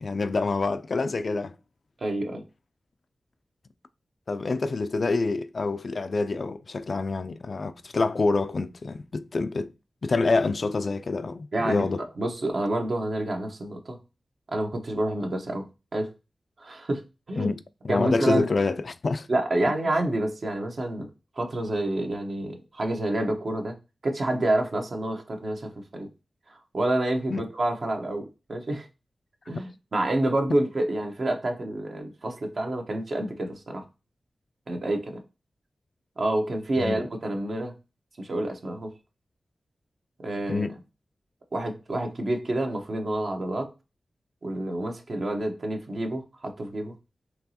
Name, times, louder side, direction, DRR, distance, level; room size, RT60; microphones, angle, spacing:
voice 1, 0.0-1.6 4.3-9.7 10.0-12.0 17.4-17.6 17.8-19.3 27.3-27.4 36.8-37.0 40.5-40.8, left 3 dB, 65° left, 0.3 m, -27 dB
voice 2, 2.0-2.4 11.5-14.0 14.5-16.1 16.6-17.0 17.3-17.5 17.9-18.5 19.3-21.1 21.4-23.8 24.0-26.1 26.5-28.9 29.5-33.8 34.7-35.2 36.2-37.7 38.2-38.9 40.2-40.7 41.5-43.7 44.4-46.9, right 1 dB, 65° right, 0.9 m, -28 dB
4.5 x 3.0 x 2.8 m
cardioid pair, 50°, 0 cm